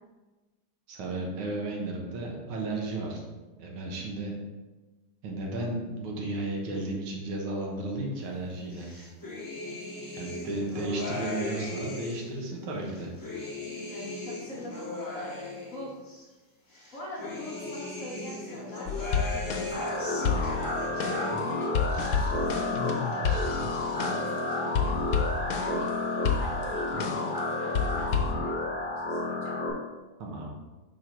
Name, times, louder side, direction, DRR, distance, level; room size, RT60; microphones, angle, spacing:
voice 1, 0.9-3.2 3.6-4.3 5.2-8.9 9.6-9.8 10.1-13.1 13.4-13.5 30.2-30.5, right 2 dB, 75° right, -1 dB, 1.9 m, -34 dB
sound 1, 8.7-12.3 12.8-16.2 16.7-21.6 21.8-22.7 23.0-23.8, left 2 dB, 15° left, 0.8 m, -38 dB
voice 2, 13.6-14.9 15.7-15.9 16.9-21.7 22.1-25.9 26.4-28.5 28.8-29.6, left 1 dB, 50° left, -4 dB, 1.1 m, -43 dB
sound 2, 18.9-19.9 20.2-24.4 24.7-25.9 26.2-27.4 27.7-28.3, left 6 dB, 75° left, 1.4 m, -30 dB
sound 3, 19.7-29.7, left 2 dB, 15° right, 1.9 m, -31 dB
5.3 x 4.5 x 4.4 m, 1.2 s
omnidirectional pair, 2.4 m